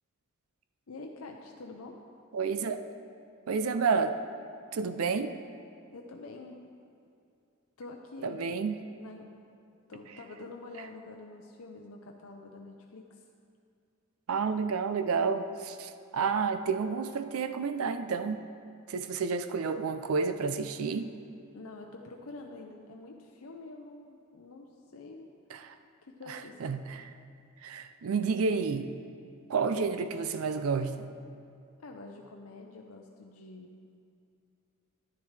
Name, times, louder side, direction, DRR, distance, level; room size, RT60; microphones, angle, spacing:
voice 1, 0.9-2.0 5.9-6.6 7.8-8.4 8.9-9.3 9.9-13.2 21.5-25.3 26.1-26.6 31.8-33.8, left 3 dB, 80° left, 1 dB, 0.6 m, -46 dB
voice 2, 2.3-2.8 3.5-4.2 4.7-5.3 8.2-8.7 14.3-18.4 18.9-21.1 25.5-25.7 26.3-27.1 27.6-28.9 29.5-31.1, right 5 dB, 80° right, 10 dB, 0.5 m, -30 dB
10.5 x 10.5 x 3.3 m, 2.5 s
head